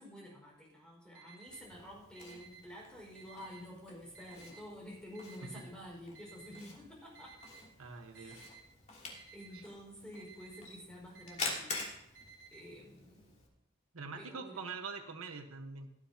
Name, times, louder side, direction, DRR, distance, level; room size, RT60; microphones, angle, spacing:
voice 1, 0.0-7.4 8.1-8.6 9.3-11.9 12.5-13.3 14.2-14.7, equal, 5° left, -3 dB, 5.2 m, -50 dB
Alarm, 1.1-1.6 2.1-2.6 3.1-3.6 4.1-4.6 5.1-5.6 6.1-6.6 7.1-7.6 8.1-8.6 9.1-9.6 10.1-10.6 11.1-11.6 12.1-12.6, right 6 dB, 60° right, 2.8 m, -55 dB
Camera, 1.5-13.5, left 3 dB, 35° left, 3.0 m, -47 dB
voice 2, 7.8-8.5 9.5-9.6 13.9-15.9, right 4 dB, 90° right, 5 dB, 1.3 m, -44 dB
17.5 x 12.0 x 2.9 m, 0.84 s
head